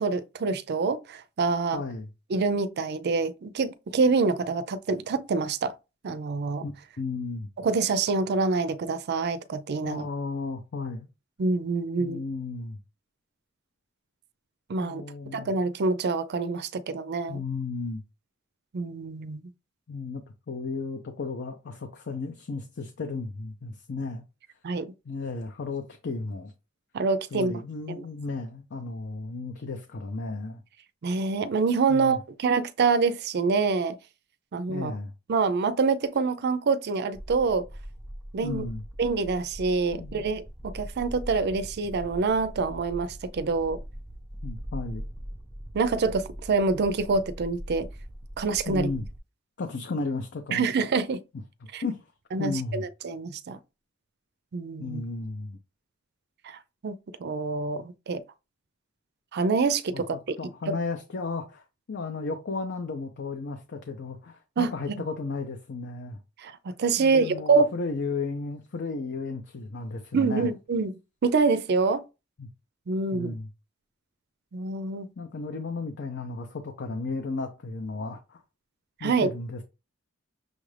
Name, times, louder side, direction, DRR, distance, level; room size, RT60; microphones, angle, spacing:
voice 1, 0.0-1.8 2.3-5.7 6.0-6.6 7.6-10.1 11.4-12.2 14.7-15.0 15.3-17.4 18.7-19.4 24.6-24.9 26.9-27.5 31.0-34.0 34.5-34.9 35.3-37.6 38.3-38.6 39.0-43.8 45.7-47.9 48.4-48.9 50.5-51.2 51.7-51.8 52.3-53.6 54.5-55.0 56.4-58.2 59.3-60.4 60.7-60.8 64.6-64.7 66.4-67.7 70.1-70.9 71.2-72.1 72.9-73.4 74.5-75.1 79.0-79.3, right 4 dB, 55° right, 0.4 m, -26 dB
voice 2, 1.7-2.1 6.6-7.5 9.8-11.1 12.0-12.8 14.8-15.5 17.3-18.0 19.9-24.2 25.1-26.5 27.3-30.6 31.9-32.2 34.7-35.1 38.4-38.8 39.9-40.3 44.4-45.0 48.7-49.1 49.6-50.6 51.8-52.0 52.4-52.8 54.8-55.6 59.9-61.6 61.9-66.2 67.0-70.5 72.4-72.5 73.1-73.5 75.2-78.4 79.0-79.6, left 3 dB, 55° left, 0.6 m, -34 dB
sound 1, 37.1-49.2, equal, ahead, 0.6 m, -41 dB
6.3 x 2.5 x 3.3 m
head